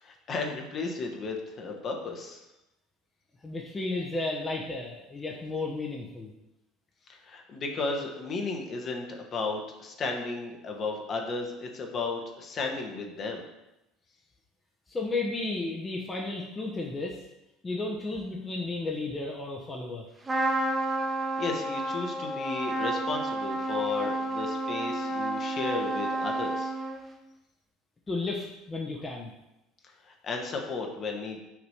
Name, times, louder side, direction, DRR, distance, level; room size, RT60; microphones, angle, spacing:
voice 1, 0.0-2.4 7.1-13.4 21.2-26.7 30.1-31.4, left 3 dB, 40° left, 2 dB, 1.2 m, -34 dB
voice 2, 3.4-6.3 14.9-17.2 17.6-20.0 28.1-29.3, left 3 dB, 20° left, -1 dB, 0.9 m, -33 dB
Trumpet, 20.3-27.2, right 2 dB, 20° right, 1.1 m, -30 dB
5.9 x 3.1 x 5.6 m, 0.92 s
hypercardioid pair, 70°, 0 cm